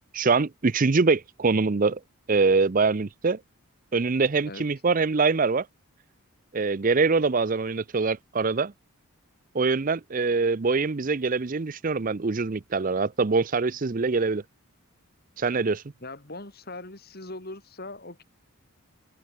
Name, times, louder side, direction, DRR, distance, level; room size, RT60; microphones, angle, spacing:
voice 1, 0.1-2.0 2.3-3.4 3.9-5.7 6.5-8.7 9.5-14.4 15.4-15.8, right 4 dB, 35° right, 0.5 m, -24 dB
voice 2, 16.0-18.2, left 2 dB, 45° left, 4.0 m, -40 dB
open air
head